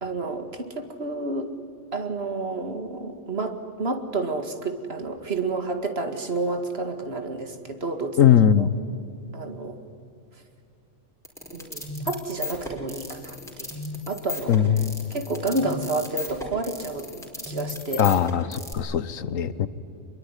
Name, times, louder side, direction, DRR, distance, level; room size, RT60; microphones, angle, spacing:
voice 1, 0.0-1.5 1.9-8.7 9.3-9.8 11.5-13.7 14.1-14.5 15.1-17.1 17.5-18.1 19.3-19.6, right 3 dB, 50° right, 7 dB, 2.2 m, -30 dB
voice 2, 8.2-8.8 14.5-15.1 18.0-19.7, left 9 dB, 85° left, 16 dB, 1.4 m, -20 dB
sound 1, 11.2-18.7, left 3 dB, ahead, 4.7 m, -35 dB
26.0 x 22.0 x 9.8 m, 2.6 s
omnidirectional pair, 1.4 m